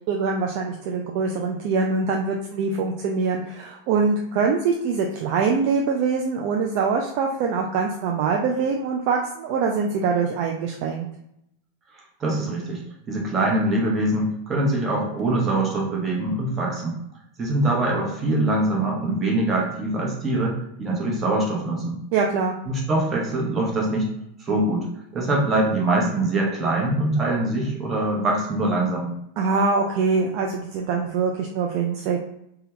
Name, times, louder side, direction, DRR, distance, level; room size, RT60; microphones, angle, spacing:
voice 1, 0.1-11.1 22.1-22.6 29.4-32.2, right 5 dB, 45° right, 1 dB, 0.3 m, -23 dB
voice 2, 12.2-12.8 13.1-16.9 17.4-22.0 22.7-24.1 24.4-24.9 25.1-29.1, right 2 dB, 20° right, -2 dB, 1.0 m, -23 dB
3.3 x 2.2 x 3.0 m, 0.77 s
figure-of-eight pair, 90°, 0 cm